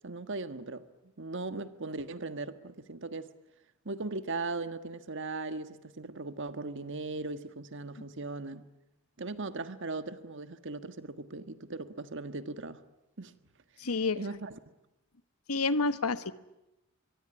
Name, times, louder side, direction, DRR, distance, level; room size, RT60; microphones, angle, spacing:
voice 1, 0.0-0.8 1.2-3.3 3.8-8.7 9.2-12.8 13.2-13.3 14.1-14.6, right 3 dB, 60° right, 1.5 m, -38 dB
voice 2, 13.8-14.2 15.5-16.3, left 3 dB, 90° left, 1.3 m, -29 dB
24.0 x 22.5 x 9.8 m
head